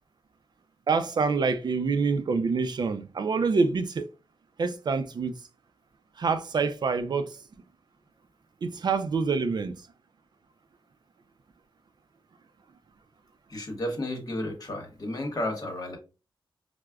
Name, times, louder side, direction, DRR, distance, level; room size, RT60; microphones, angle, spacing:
voice 1, 0.9-4.1 4.6-5.4 6.2-7.4 8.6-9.8, right 4 dB, 55° right, 0.4 m, -26 dB
voice 2, 13.5-16.0, left 1 dB, 45° left, 1.0 m, -32 dB
4.6 x 2.1 x 2.2 m
wide cardioid pair, 90°, 9 cm